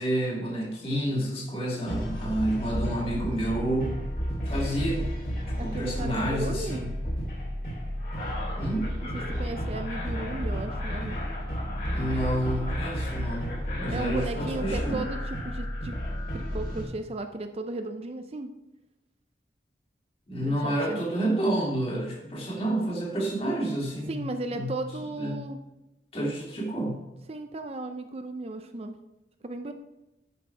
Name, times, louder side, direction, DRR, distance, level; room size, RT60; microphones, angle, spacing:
voice 1, 0.0-3.9 4.4-5.1 5.5-6.9 8.6-8.9 11.9-13.5 13.8-15.0 20.3-24.8 25.2-25.4 26.1-27.0, right 1 dB, 35° left, -3 dB, 2.7 m, -29 dB
sound 1, 1.9-16.8, equal, 50° left, 3.4 m, -32 dB
voice 2, 5.6-6.9 9.1-11.2 13.9-16.0 16.3-18.5 20.4-21.0 24.1-25.6 27.3-28.9 29.4-29.7, right 2 dB, 35° right, 7 dB, 0.5 m, -35 dB
10.0 x 6.4 x 4.6 m, 0.98 s
head